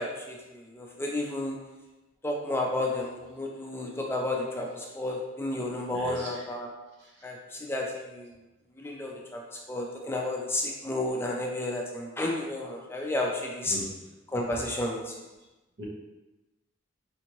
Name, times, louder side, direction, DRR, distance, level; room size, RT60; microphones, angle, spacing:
voice 1, 0.0-1.6 2.2-6.7 7.2-8.3 8.8-9.4 9.7-13.8 14.3-15.2, left 1 dB, 10° left, -1 dB, 0.3 m, -32 dB
voice 2, 5.9-6.5 13.6-13.9 15.8-15.9, equal, 60° right, -3 dB, 0.8 m, -39 dB
3.4 x 2.8 x 2.9 m, 1.1 s
head